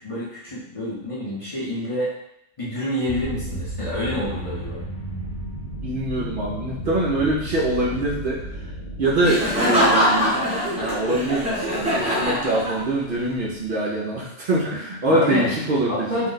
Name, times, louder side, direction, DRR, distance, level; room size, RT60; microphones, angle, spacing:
voice 1, 0.0-2.1 2.6-4.8 15.1-15.5 15.9-16.3, left 1 dB, 35° left, -8 dB, 0.8 m, -28 dB
sound 1, 3.1-10.8, right 1 dB, 90° left, 1.1 m, -34 dB
voice 2, 5.8-8.4 9.0-10.4 10.7-16.3, right 1 dB, 60° right, -4 dB, 0.7 m, -24 dB
Laughter, 9.2-13.2, equal, 10° right, 0.5 m, -22 dB
2.6 x 2.2 x 3.8 m, 0.77 s
omnidirectional pair, 1.2 m